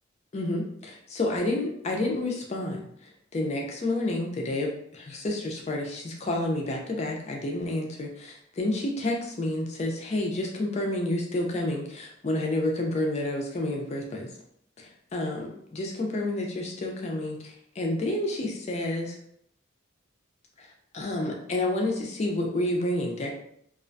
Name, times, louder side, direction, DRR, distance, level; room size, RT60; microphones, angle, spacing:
voice 1, 0.3-2.8 3.3-14.3 15.1-19.2 20.6-20.7 20.9-23.3, left 1 dB, 30° left, 0 dB, 0.4 m, -29 dB
2.3 x 2.1 x 2.5 m, 0.70 s
head